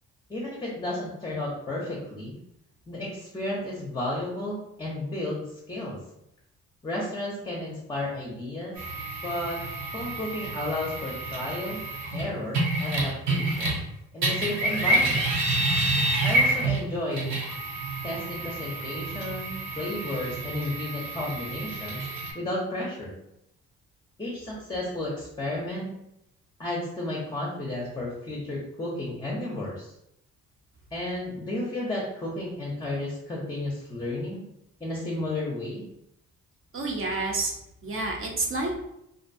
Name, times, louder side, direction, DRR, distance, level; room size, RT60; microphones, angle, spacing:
voice 1, 0.3-2.4 2.9-6.0 6.8-8.7 9.2-9.6 9.9-11.8 12.1-13.8 14.1-15.3 16.2-17.3 18.0-22.0 22.3-23.1 24.2-25.9 26.6-29.9 30.9-34.4 34.8-35.9, left 1 dB, 15° left, -4 dB, 0.6 m, -32 dB
sound 1, 8.8-13.9 14.2-22.3, right 2 dB, 70° right, 0.9 m, -28 dB
voice 2, 36.7-37.5 37.8-38.8, right 2 dB, 45° right, 0 dB, 0.7 m, -29 dB
2.5 x 2.1 x 2.6 m, 0.80 s
cardioid pair, 90°, 30 cm